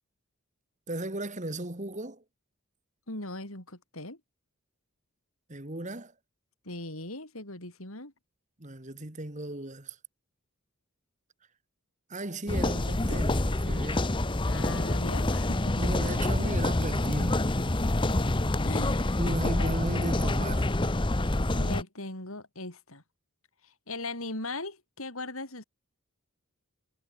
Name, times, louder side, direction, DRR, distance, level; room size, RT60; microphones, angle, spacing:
voice 1, 0.9-2.2 5.5-6.1 8.6-10.0 12.1-14.1 15.8-17.4 19.2-20.7, right 1 dB, 35° right, 2.1 m, -36 dB
voice 2, 3.1-4.2 6.7-8.1 14.4-15.9 18.6-19.7 21.6-23.0 23.6-25.6, left 2 dB, 70° left, 7.3 m, -39 dB
sound 1, 12.5-21.8, left 1 dB, 20° left, 0.8 m, -27 dB
head